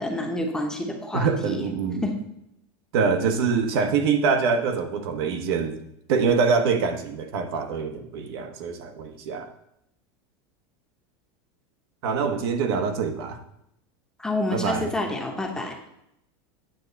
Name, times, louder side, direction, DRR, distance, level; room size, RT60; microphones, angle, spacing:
voice 1, 0.0-1.6 2.0-2.1 14.2-15.8, left 1 dB, 5° left, 1 dB, 0.9 m, -28 dB
voice 2, 1.1-2.1 2.9-5.8 6.1-9.5 12.0-13.4 14.5-14.9, right 5 dB, 70° right, 5 dB, 1.2 m, -24 dB
9.0 x 3.7 x 6.9 m, 0.79 s
supercardioid pair, 165°, 14 cm